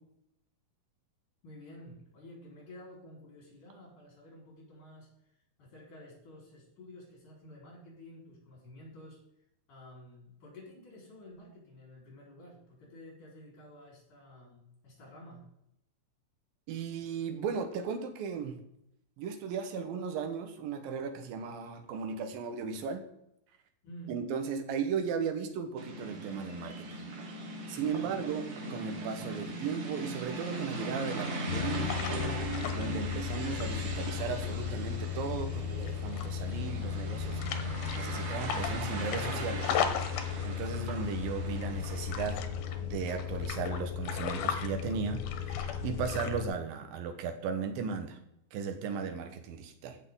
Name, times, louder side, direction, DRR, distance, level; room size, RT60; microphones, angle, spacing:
voice 1, 1.4-5.1 5.6-9.2 9.7-15.5 23.8-24.3 28.0-28.1, left 1 dB, 60° left, -2 dB, 5.8 m, -51 dB
voice 2, 16.7-18.6 19.2-23.0 24.1-27.1 27.7-31.9 32.7-37.4 37.9-39.8 40.4-42.4 42.9-48.2 48.5-50.0, right 6 dB, 80° right, 6 dB, 2.8 m, -36 dB
sound 1, 25.8-42.2, right 2 dB, 60° right, 3.4 m, -39 dB
sound 2, 31.5-46.5, left 9 dB, 85° left, 2.8 m, -35 dB
sound 3, 33.5-42.8, left 2 dB, 20° left, 2.8 m, -55 dB
15.0 x 6.3 x 3.7 m, 0.79 s
omnidirectional pair, 4.2 m